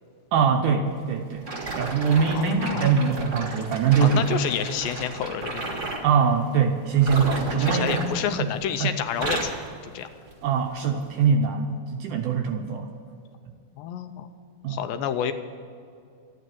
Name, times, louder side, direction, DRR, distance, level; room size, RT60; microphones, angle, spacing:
voice 1, 0.3-1.5 1.8-4.2 6.0-8.0 8.4-8.5 8.8-8.9 10.4-12.9 14.6-14.8, right 6 dB, 80° right, 4 dB, 1.9 m, -22 dB
sound 1, 1.4-6.1 6.9-8.7 9.0-9.7 10.3-10.5 11.1-11.2, right 2 dB, 50° right, 0.9 m, -33 dB
voice 2, 2.1-2.9 4.0-6.1 7.6-9.5 9.8-10.1 13.8-14.3 14.7-15.3, left 9 dB, 80° left, 8 dB, 2.3 m, -29 dB
13.0 x 9.4 x 9.3 m, 2.4 s
omnidirectional pair, 4.3 m